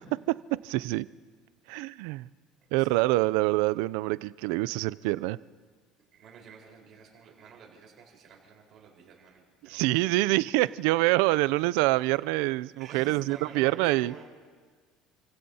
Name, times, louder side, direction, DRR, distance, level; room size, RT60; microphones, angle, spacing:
voice 1, 0.6-1.1 1.7-2.3 2.7-5.4 9.6-14.1, right 19 dB, 80° right, 18 dB, 0.4 m, -26 dB
voice 2, 6.1-10.0 10.6-10.7 12.8-14.3, right 6 dB, 50° right, -1 dB, 4.4 m, -49 dB
28.5 x 16.5 x 2.8 m, 1.6 s
supercardioid pair, 120°, 0 cm